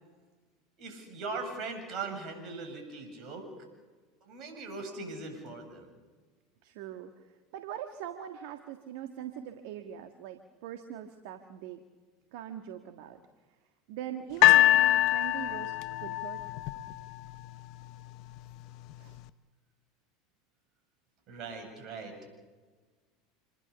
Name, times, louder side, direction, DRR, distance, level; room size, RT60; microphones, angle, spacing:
voice 1, 0.8-3.5 4.2-5.9 21.3-22.3, right 3 dB, 45° right, 5 dB, 8.0 m, -40 dB
voice 2, 6.6-11.8 12.3-13.2 13.9-16.4 19.0-19.2, right 10 dB, 65° right, 7 dB, 1.6 m, -42 dB
sound 1, 14.4-17.6 18.4-18.5, left 15 dB, 55° left, 0.8 m, -24 dB
27.5 x 21.5 x 7.0 m, 1.4 s
hypercardioid pair, 80°, 0 cm